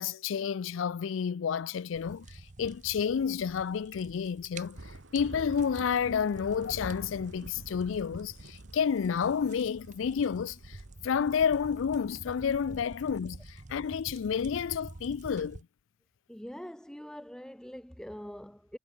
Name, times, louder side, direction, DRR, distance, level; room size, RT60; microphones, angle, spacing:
voice 1, 0.0-4.8 5.1-10.8 11.0-15.6, left 7 dB, 90° left, 0.4 m, -30 dB
sound 1, 1.9-15.6, right 2 dB, 40° right, 0.8 m, -48 dB
sound 2, 4.7-14.7, right 1 dB, 85° right, 3.1 m, -49 dB
voice 2, 16.3-18.8, equal, 5° left, 0.5 m, -44 dB
head